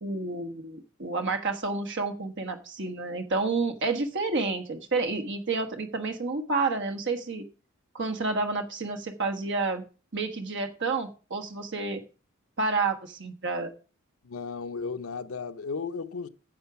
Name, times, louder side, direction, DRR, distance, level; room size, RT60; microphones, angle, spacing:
voice 1, 0.0-7.5 7.9-9.8 10.1-12.0 12.6-13.7, right 3 dB, 60° right, 1.3 m, -30 dB
voice 2, 14.2-16.3, left 5 dB, 80° left, 0.7 m, -34 dB
9.7 x 7.4 x 5.8 m
head